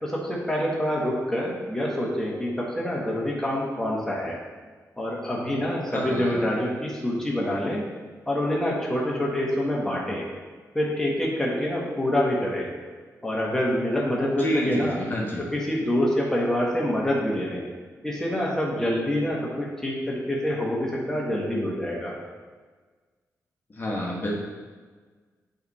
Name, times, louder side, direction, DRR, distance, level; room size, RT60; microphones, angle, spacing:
voice 1, 0.0-4.4 5.0-7.8 8.3-10.3 10.7-12.7 13.2-15.0 15.5-17.6 18.0-22.2, left 1 dB, 10° left, -4 dB, 1.3 m, -26 dB
voice 2, 5.9-6.4 14.2-15.5 23.7-24.4, equal, 35° left, -3 dB, 1.3 m, -29 dB
8.0 x 3.4 x 4.2 m, 1.4 s
cardioid pair, 80°, 6 cm